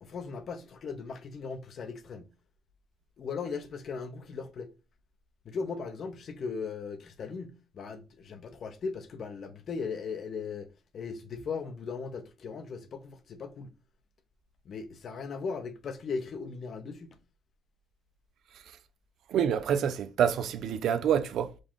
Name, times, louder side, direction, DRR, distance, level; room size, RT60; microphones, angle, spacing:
voice 1, 0.0-2.3 3.2-4.7 5.4-13.7 14.6-17.2, left 5 dB, 60° left, 0.7 m, -38 dB
voice 2, 19.3-21.6, right 8 dB, 75° right, 0.5 m, -27 dB
5.1 x 2.5 x 3.6 m
cardioid pair, 90°, 0 cm